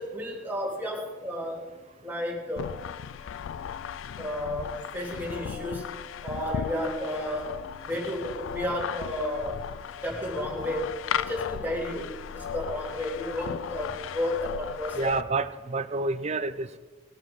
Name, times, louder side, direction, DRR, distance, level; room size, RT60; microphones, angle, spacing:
voice 1, 0.0-1.7 2.0-2.7 4.2-6.0 6.2-9.7 10.0-15.2, left 1 dB, 10° right, -2 dB, 2.9 m, -32 dB
sound 1, 2.6-15.2, left 8 dB, 65° left, 0.3 m, -36 dB
voice 2, 14.9-16.8, right 3 dB, 30° right, 11 dB, 0.6 m, -29 dB
19.5 x 8.2 x 5.4 m, 1.2 s
head